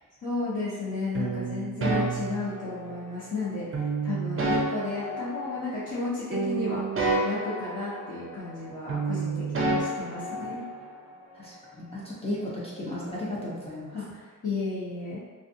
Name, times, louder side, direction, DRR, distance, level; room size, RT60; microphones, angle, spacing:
voice 1, 0.2-10.6 13.9-15.2, left 3 dB, 50° left, -13 dB, 0.8 m, -33 dB
sound 1, 1.1-3.1 3.7-6.0 6.3-8.6 8.9-10.9, right 3 dB, 40° right, 0.5 m, -30 dB
voice 2, 11.3-13.9, left 1 dB, 15° left, -8 dB, 0.6 m, -35 dB
2.4 x 2.4 x 2.6 m, 1.5 s
wide cardioid pair, 90°, 35 cm